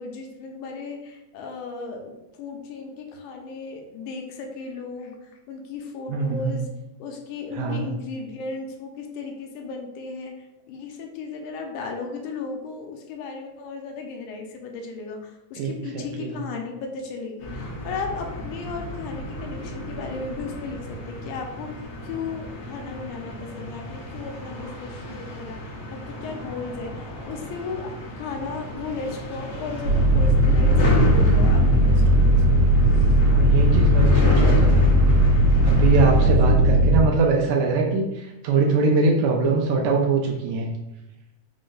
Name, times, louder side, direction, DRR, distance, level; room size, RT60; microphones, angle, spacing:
voice 1, 0.0-6.7 7.0-10.3 10.7-21.7 22.0-32.7 34.2-34.9 36.2-36.8, left 4 dB, 80° left, 3 dB, 2.0 m, -35 dB
voice 2, 6.1-6.5 7.5-7.9 15.6-16.4 33.3-34.7 35.6-40.7, right 4 dB, 80° right, 0 dB, 1.7 m, -22 dB
sound 1, 17.4-36.3, left 1 dB, 60° left, 1.5 m, -32 dB
sound 2, 29.8-37.0, equal, 60° right, 1.6 m, -17 dB
5.1 x 2.1 x 3.8 m, 0.93 s
omnidirectional pair, 3.5 m